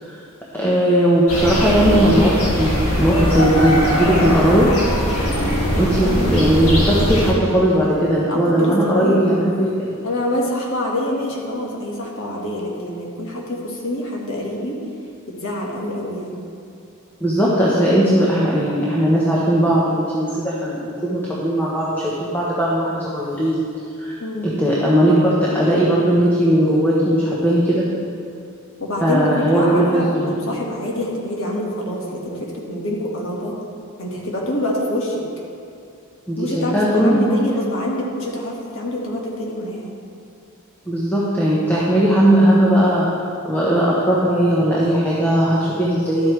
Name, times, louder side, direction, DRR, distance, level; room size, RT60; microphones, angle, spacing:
voice 1, 0.5-4.7 5.8-10.0 17.2-23.6 24.0-24.2 24.4-27.8 29.0-30.4 36.3-37.4 40.9-46.3, right 1 dB, 10° left, -7 dB, 1.1 m, -18 dB
sound 1, 1.3-7.3, equal, 80° left, 1.9 m, -20 dB
voice 2, 5.5-6.4 8.3-9.2 10.0-14.8 15.3-16.5 24.2-24.5 28.8-33.5 34.0-35.2 36.4-39.9, left 1 dB, 65° left, -2 dB, 1.7 m, -26 dB
12.0 x 8.2 x 3.3 m, 2.5 s
head